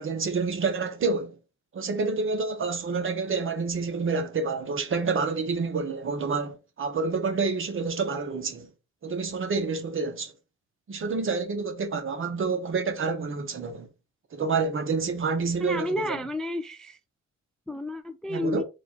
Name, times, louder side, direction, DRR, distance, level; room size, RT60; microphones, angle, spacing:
voice 1, 0.0-1.4 1.7-8.7 9.0-10.3 10.9-13.9 14.3-16.2 18.3-18.6, right 4 dB, 45° right, 1.0 m, -28 dB
voice 2, 15.6-17.0 17.7-18.6, left 1 dB, ahead, 0.3 m, -31 dB
4.2 x 2.4 x 4.3 m
cardioid pair, 90°, 30 cm